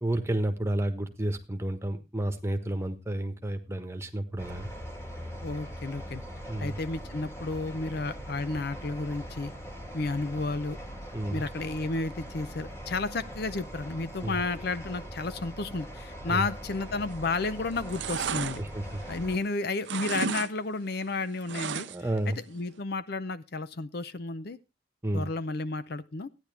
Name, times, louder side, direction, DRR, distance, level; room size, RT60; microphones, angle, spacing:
voice 1, 0.0-4.7 6.5-6.8 11.1-11.4 14.2-14.4 16.3-16.4 18.6-19.0 21.9-22.4 25.0-25.3, right 1 dB, 15° right, 6 dB, 1.3 m, -31 dB
sound 1, 4.4-19.4, equal, 15° left, 1.9 m, -42 dB
voice 2, 5.4-6.2 6.6-9.5 9.9-10.8 11.3-18.6 19.1-21.9 22.3-24.6 25.1-26.3, left 3 dB, 50° left, 14 dB, 0.6 m, -32 dB
sound 2, 17.0-17.4 17.7-19.5 19.8-20.5 20.8-22.2 22.5-22.6, right 7 dB, 60° right, 0.6 m, -34 dB
14.5 x 9.9 x 3.4 m, 0.28 s
head